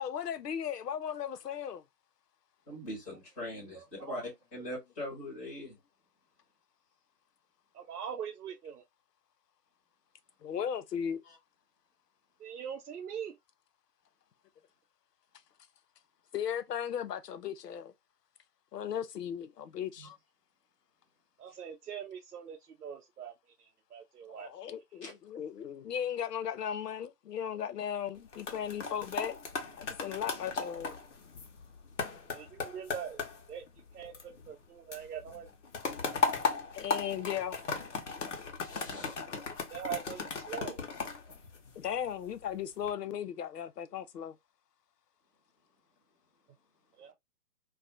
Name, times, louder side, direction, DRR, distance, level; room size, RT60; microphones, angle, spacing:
voice 1, 0.0-1.8 10.4-11.2 16.3-17.9 18.7-20.1 24.3-29.4 29.8-30.9 36.7-37.6 41.8-44.3, left 9 dB, 85° left, 0.6 m, -36 dB
voice 2, 2.7-5.8 11.2-11.4 20.0-20.1 25.0-25.1 38.6-39.2, left 1 dB, 10° left, 0.8 m, -42 dB
voice 3, 3.7-4.2 7.7-8.8 12.4-13.3 21.4-23.3 23.6-24.5 32.3-33.2 33.5-33.6 33.9-35.5 39.7-40.8 47.0-47.1, right 8 dB, 75° right, 0.6 m, -42 dB
sound 1, 28.2-34.6 34.9-42.1 42.6-42.9, left 4 dB, 50° left, 0.8 m, -37 dB
2.4 x 2.3 x 2.5 m
figure-of-eight pair, 150°, 47 cm